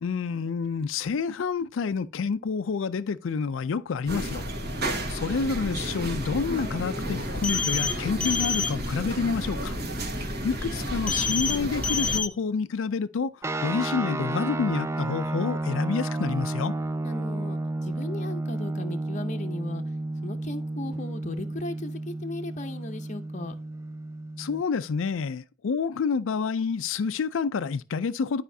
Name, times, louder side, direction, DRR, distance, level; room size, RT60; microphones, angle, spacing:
voice 1, 0.0-4.5 5.1-9.7 10.4-13.3 13.6-16.7 24.4-28.4, left 5 dB, 80° left, 0.4 m, -28 dB
sound 1, 4.1-12.2, equal, 50° right, 1.6 m, -32 dB
sound 2, 7.4-7.9 8.2-8.7 11.1-11.6 11.8-12.3, left 5 dB, 5° left, 1.1 m, -27 dB
sound 3, 13.4-24.6, right 2 dB, 15° right, 0.3 m, -32 dB
voice 2, 17.0-19.8 20.2-23.5, left 2 dB, 35° left, 0.7 m, -36 dB
11.0 x 5.0 x 2.7 m
head